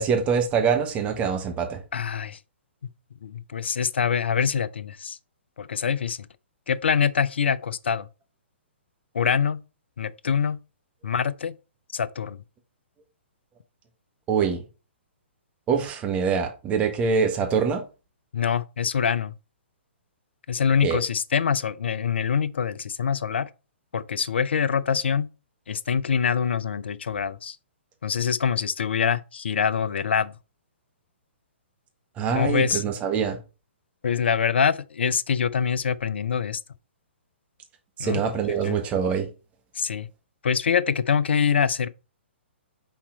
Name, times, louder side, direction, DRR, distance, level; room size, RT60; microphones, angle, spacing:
voice 1, 0.0-1.8 14.3-14.6 15.7-17.8 20.8-21.0 32.2-33.4 38.0-39.3, right 6 dB, 20° right, 1.4 m, -24 dB
voice 2, 1.9-2.4 2.8-2.9 3.2-5.2 5.6-6.3 6.7-8.1 9.1-9.6 10.0-10.6 11.0-11.5 11.9-12.4 18.3-19.3 20.5-23.5 23.9-25.3 25.7-27.6 28.0-30.3 32.3-32.8 34.0-36.6 38.0-38.2 38.6-38.8 39.8-40.1 40.4-41.9, left 7 dB, 65° left, 0.5 m, -24 dB
5.9 x 4.2 x 3.9 m
figure-of-eight pair, 120°, 6 cm